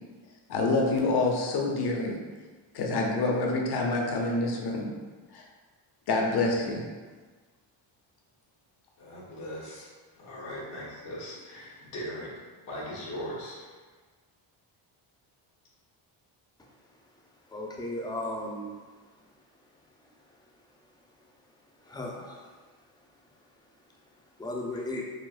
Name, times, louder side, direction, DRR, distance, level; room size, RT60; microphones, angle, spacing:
voice 1, 0.5-2.2 2.7-4.9 5.3-5.4 6.1-6.8, left 2 dB, 50° left, 0 dB, 0.7 m, -27 dB
voice 2, 9.0-13.7 24.7-24.8, equal, 80° left, -8 dB, 1.2 m, -40 dB
voice 3, 17.5-18.8 21.9-22.5 24.4-25.1, left 1 dB, 10° left, -1 dB, 0.3 m, -35 dB
4.5 x 2.0 x 2.5 m, 1.4 s
cardioid pair, 95°, 49 cm